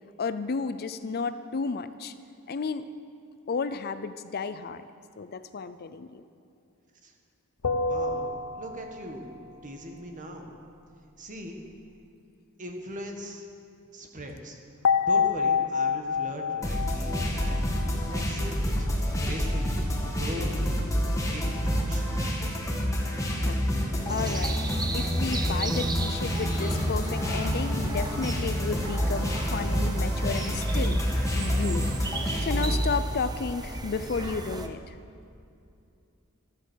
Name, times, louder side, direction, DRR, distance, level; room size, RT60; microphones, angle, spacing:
voice 1, 0.2-2.1 2.5-2.9 3.5-4.8 5.2-6.2 23.3-24.6 24.9-31.0 31.3-31.9 32.4-35.0, left 4 dB, 45° left, 12 dB, 0.5 m, -32 dB
sound 1, 7.6-9.2 14.8-18.2, left 5 dB, 85° left, 0.8 m, -27 dB
voice 2, 7.8-10.5 11.2-11.6 12.6-13.4 13.9-14.6 15.0-17.7 18.1-18.9 19.2-19.7 20.2-20.5 21.3-22.4, equal, 35° right, 3 dB, 1.7 m, -40 dB
sound 2, 16.6-32.8, equal, 15° left, 1.9 m, -28 dB
sound 3, 24.1-34.7, right 2 dB, 20° right, 0.8 m, -36 dB
14.0 x 13.0 x 6.4 m, 2.6 s
head